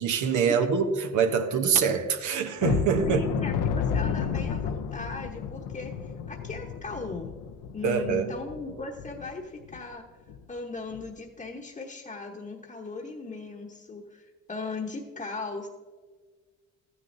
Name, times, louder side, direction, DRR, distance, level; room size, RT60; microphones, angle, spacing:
voice 1, 0.0-3.2 7.8-8.3, right 6 dB, 80° right, 0.9 m, -25 dB
sound 1, 2.6-9.3 9.7-9.8 10.3-10.4 10.9-11.1, left 7 dB, 85° left, 0.6 m, -31 dB
voice 2, 3.0-7.3 7.7-10.0 10.5-15.7, left 3 dB, 25° left, 1.0 m, -38 dB
13.5 x 9.5 x 2.6 m
cardioid pair, 90°, 30 cm